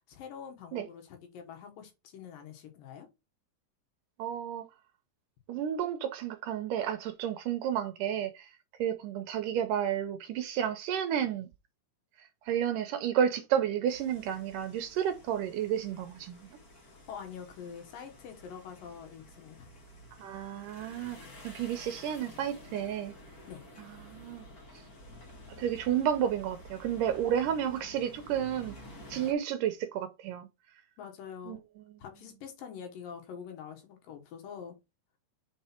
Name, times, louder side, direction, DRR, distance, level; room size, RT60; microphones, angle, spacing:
voice 1, 0.1-3.1 16.8-19.7 23.5-23.6 31.0-31.6 32.0-34.7, left 7 dB, 70° left, 2.9 m, -45 dB
voice 2, 4.2-4.7 5.5-11.5 12.2-16.5 20.2-21.2 21.4-23.1 24.0-24.5 25.6-28.8 29.1-30.5 31.5-31.6, right 9 dB, 75° right, 2.0 m, -31 dB
sound 1, 13.9-29.3, left 1 dB, 50° left, 1.1 m, -51 dB
5.8 x 4.6 x 4.3 m
omnidirectional pair, 4.2 m